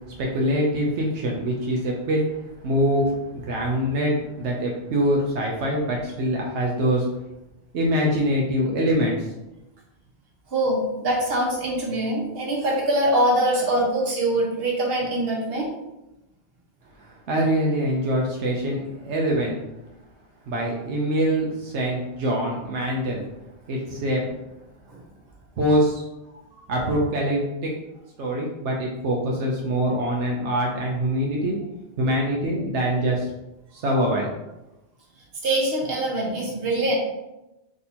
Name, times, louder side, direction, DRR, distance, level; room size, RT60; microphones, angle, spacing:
voice 1, 0.2-2.2 2.6-7.1 7.7-9.3 17.0-19.6 20.5-23.2 23.7-24.3 25.6-26.0 26.7-27.7 28.2-31.6 32.0-33.3 33.7-34.3, equal, 85° right, -2 dB, 1.0 m, -24 dB
voice 2, 10.5-15.7 24.9-25.0 35.4-36.9, right 1 dB, 60° right, -3 dB, 1.3 m, -23 dB
3.7 x 2.7 x 4.2 m, 0.95 s
omnidirectional pair, 1.1 m